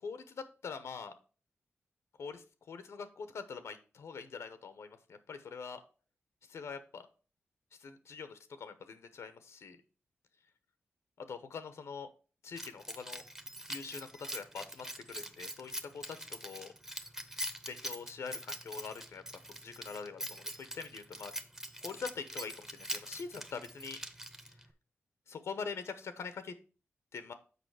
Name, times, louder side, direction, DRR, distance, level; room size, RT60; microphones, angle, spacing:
voice 1, 0.0-1.1 2.2-5.8 6.5-7.1 7.8-9.8 11.3-12.1 12.4-13.2 13.7-16.7 17.7-19.2 19.5-21.3 21.8-24.0 25.3-26.5 27.1-27.3, left 5 dB, 80° left, 10 dB, 0.8 m, -44 dB
Keys jangling, 12.6-24.7, equal, 10° right, 0.8 m, -43 dB
6.8 x 4.9 x 4.8 m, 0.36 s
cardioid pair, 85°, 5 cm